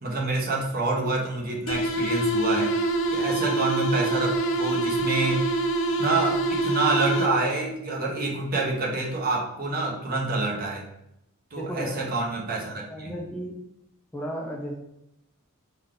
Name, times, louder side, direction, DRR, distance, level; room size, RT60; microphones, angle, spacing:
voice 1, 0.0-2.7 3.1-5.4 6.0-10.8 11.5-13.1, right 2 dB, 45° right, -2 dB, 0.9 m, -27 dB
sound 1, 1.7-7.6, right 2 dB, 60° left, 0.5 m, -25 dB
voice 2, 11.5-12.0 12.7-13.6 14.1-14.7, equal, 5° left, -1 dB, 0.4 m, -34 dB
5.3 x 2.4 x 3.7 m, 0.81 s
head